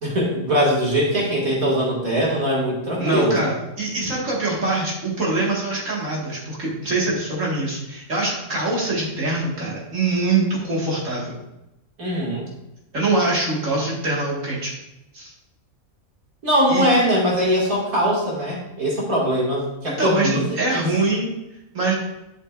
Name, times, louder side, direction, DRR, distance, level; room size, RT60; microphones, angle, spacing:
voice 1, 0.0-3.4 12.0-12.4 16.4-20.8, equal, 80° right, -4 dB, 2.8 m, -21 dB
voice 2, 3.0-11.3 12.9-14.7 15.1-15.3 16.7-16.8 20.0-21.3 21.7-21.9, right 2 dB, 60° right, -5 dB, 2.3 m, -23 dB
11.0 x 6.5 x 2.5 m, 0.91 s
omnidirectional pair, 1.5 m